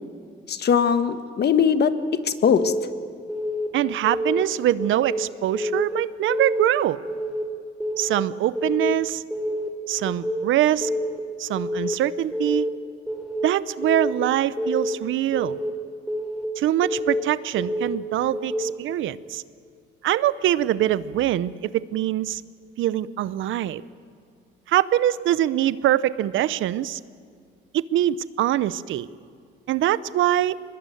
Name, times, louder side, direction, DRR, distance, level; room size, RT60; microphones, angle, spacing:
voice 1, 0.5-2.7, left 7 dB, 55° left, 10 dB, 1.4 m, -21 dB
Keyboard (musical) / Alarm, 2.5-2.9 3.3-3.7 4.0-4.4 4.8-5.2 5.5-5.9 6.3-6.7 7.1-7.4 7.8-8.2 8.6-8.9 9.3-9.7 10.1-10.4 10.8-11.2 11.6-11.9 12.3-12.7 13.1-13.4 13.8-14.2 14.6-15.0 15.3-15.7 16.1-16.5 16.8-17.2 17.6-18.0 18.3-18.7, left 1 dB, 5° right, 4.1 m, -27 dB
voice 2, 3.7-7.0 8.0-9.2 9.9-10.9 11.4-12.7 13.4-15.6 16.6-19.4 20.0-22.4 22.8-23.8 24.7-27.0 27.7-29.1 29.7-30.6, right 12 dB, 80° right, 17 dB, 0.7 m, -23 dB
24.0 x 20.5 x 9.2 m, 2.2 s
cardioid pair, 90°, 20 cm